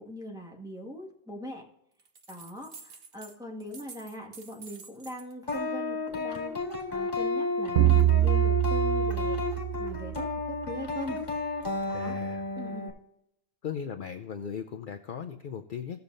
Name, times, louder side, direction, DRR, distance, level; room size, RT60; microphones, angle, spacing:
voice 1, 0.0-1.6 2.3-6.5 6.9-9.4 9.8-11.2 11.9-12.2 12.5-12.9, equal, 5° right, -1 dB, 1.6 m, -41 dB
sound 1, 2.0-3.4 3.6-5.3, right 5 dB, 60° right, 1.2 m, -49 dB
sound 2, 5.5-12.9, left 3 dB, 40° left, 2.2 m, -32 dB
sound 3, 7.8-10.5, right 14 dB, 90° right, 1.0 m, -25 dB
voice 2, 11.9-12.4 13.6-16.0, left 7 dB, 55° left, 6 dB, 0.7 m, -37 dB
16.5 x 6.9 x 2.6 m, 0.78 s
omnidirectional pair, 1.1 m